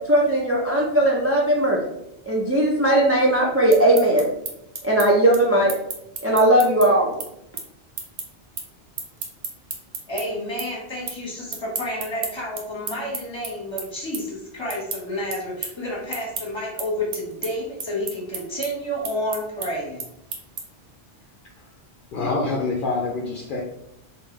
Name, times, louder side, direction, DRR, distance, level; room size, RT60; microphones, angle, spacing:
voice 1, 0.1-1.8 2.3-4.3 4.8-5.7 6.2-7.1, right 1 dB, 20° right, -3 dB, 0.3 m, -18 dB
sound 1, 3.7-10.2 10.6-11.2 11.5-20.9, right 5 dB, 90° right, 1.0 m, -33 dB
voice 2, 10.1-20.1, equal, 25° left, -4 dB, 1.2 m, -30 dB
voice 3, 22.1-23.6, left 3 dB, 60° left, -2 dB, 0.6 m, -26 dB
3.6 x 2.6 x 3.2 m, 0.81 s
omnidirectional pair, 1.2 m